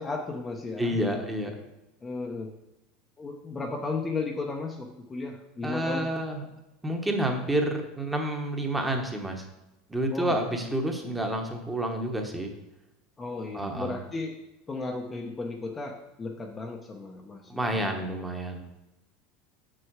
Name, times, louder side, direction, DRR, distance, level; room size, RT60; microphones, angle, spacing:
voice 1, 0.0-1.0 2.0-2.5 3.2-6.0 10.1-10.3 13.2-14.4 14.7-17.9, left 3 dB, 15° left, 1 dB, 0.7 m, -35 dB
voice 2, 0.8-1.5 5.6-6.5 6.8-9.4 9.9-12.5 13.5-14.0 17.5-18.6, right 1 dB, 10° right, 3 dB, 1.1 m, -29 dB
6.9 x 6.4 x 4.7 m, 0.95 s
supercardioid pair, 135°, 0 cm